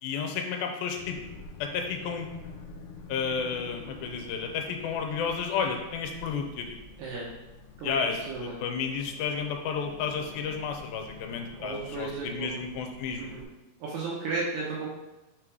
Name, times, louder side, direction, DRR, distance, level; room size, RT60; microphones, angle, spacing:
voice 1, 0.0-1.2 1.6-2.3 3.1-6.8 7.8-13.3, left 6 dB, 85° left, 4 dB, 2.5 m, -32 dB
sound 1, 1.0-13.4, left 4 dB, 70° left, 2.1 m, -47 dB
voice 2, 8.3-8.6 11.6-12.6 13.2-13.4 13.8-14.9, right 3 dB, 75° right, -4 dB, 2.4 m, -34 dB
6.1 x 3.9 x 4.6 m, 1.0 s
omnidirectional pair, 4.1 m